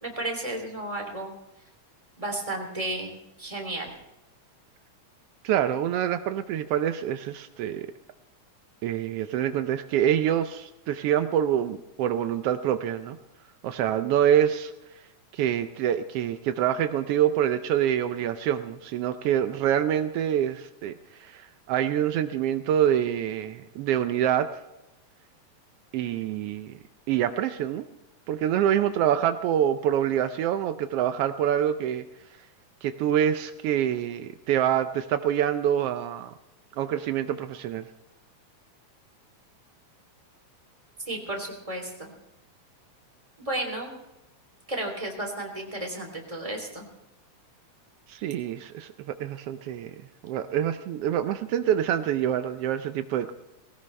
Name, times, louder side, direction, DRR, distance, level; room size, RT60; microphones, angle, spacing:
voice 1, 0.0-1.3 2.2-3.9 41.1-42.1 43.4-43.9 44.7-46.9, right 1 dB, 10° right, 2 dB, 2.9 m, -33 dB
voice 2, 5.4-7.9 8.8-13.2 13.6-14.7 15.3-20.9 21.2-24.5 25.9-26.8 27.1-27.8 28.3-32.0 32.8-36.3 36.8-37.9 48.1-53.3, right 10 dB, 85° right, 9 dB, 1.3 m, -26 dB
20.0 x 17.5 x 3.3 m, 0.93 s
omnidirectional pair, 3.4 m